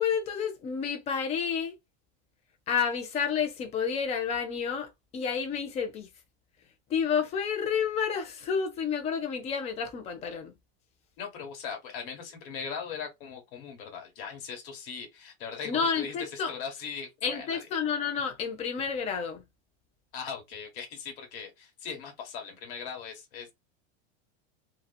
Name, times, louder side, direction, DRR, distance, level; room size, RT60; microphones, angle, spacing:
voice 1, 0.0-1.7 2.7-6.1 6.9-10.5 15.6-16.5 17.2-19.4, left 6 dB, 20° left, 0.5 m, -30 dB
voice 2, 11.2-17.7 20.1-23.5, left 6 dB, 55° left, 1.4 m, -39 dB
2.9 x 2.3 x 2.2 m
supercardioid pair, 160°, 32 cm